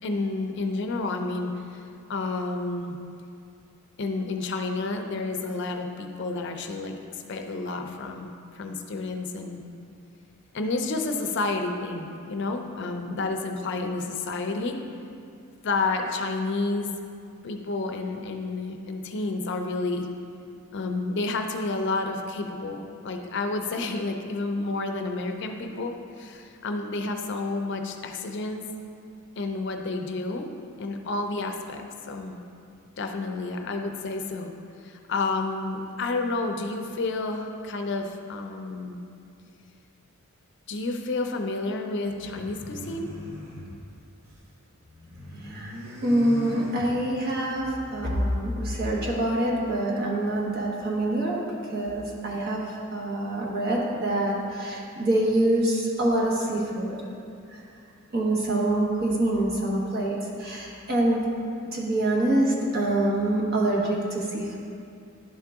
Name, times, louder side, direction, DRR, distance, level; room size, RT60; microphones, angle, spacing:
voice 1, 0.0-1.8 2.1-3.0 4.0-7.0 7.3-9.6 10.5-14.8 15.6-16.9 17.4-20.1 20.7-28.7 29.4-30.5 30.8-32.4 33.0-34.5 34.8-39.0 40.7-43.1, left 3 dB, 55° left, 4 dB, 0.5 m, -30 dB
sound 1, 42.1-44.5 44.8-47.3, left 1 dB, 75° right, 1.3 m, -40 dB
voice 2, 45.4-45.7 46.0-57.0 57.5-57.6 58.1-61.2 61.7-64.6, right 1 dB, 50° right, -3 dB, 1.1 m, -25 dB
10.5 x 3.7 x 3.5 m, 2.5 s
head